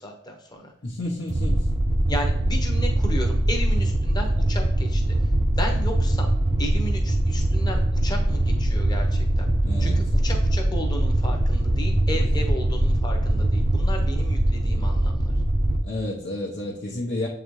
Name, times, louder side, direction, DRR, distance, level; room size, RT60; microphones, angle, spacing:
voice 1, 0.0-0.7 2.1-5.1 5.5-6.3 6.6-9.5 9.8-15.3, equal, 20° left, 2 dB, 0.9 m, -34 dB
voice 2, 0.8-1.6 9.6-10.0 12.1-12.2 15.8-17.3, left 1 dB, 65° left, -5 dB, 0.9 m, -31 dB
sound 1, 1.3-15.8, right 1 dB, 30° right, 0.5 m, -22 dB
7.6 x 3.9 x 3.2 m, 0.74 s
head